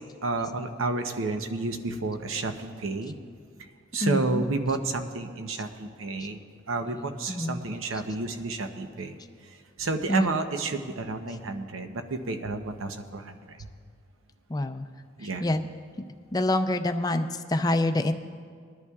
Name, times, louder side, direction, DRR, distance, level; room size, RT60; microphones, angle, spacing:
voice 1, 0.2-3.2 3.9-6.4 6.7-13.6 15.2-15.5, right 3 dB, 85° right, 7 dB, 0.8 m, -31 dB
voice 2, 4.0-4.5 7.3-7.6 10.1-10.4 14.5-14.9 15.4-15.7 16.3-18.1, left 1 dB, 20° left, 7 dB, 0.4 m, -26 dB
22.0 x 11.0 x 2.4 m, 2.1 s
head